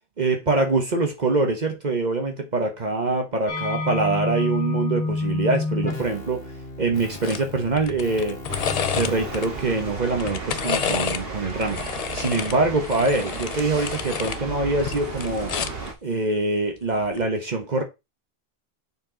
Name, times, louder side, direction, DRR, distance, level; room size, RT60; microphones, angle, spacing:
voice 1, 0.2-6.5 6.8-8.4 8.9-15.6 16.0-17.8, right 3 dB, 45° right, 1.1 m, -24 dB
sound 1, 3.5-9.9, left 3 dB, 75° left, 1.8 m, -30 dB
sound 2, 7.2-7.4 7.8-9.5 10.1-11.2 11.6-14.4 14.7-15.9 17.0-17.2, left 7 dB, 50° left, 0.5 m, -30 dB
sound 3, 8.5-15.9, right 3 dB, 70° right, 1.6 m, -34 dB
6.9 x 4.4 x 3.8 m
omnidirectional pair, 1.0 m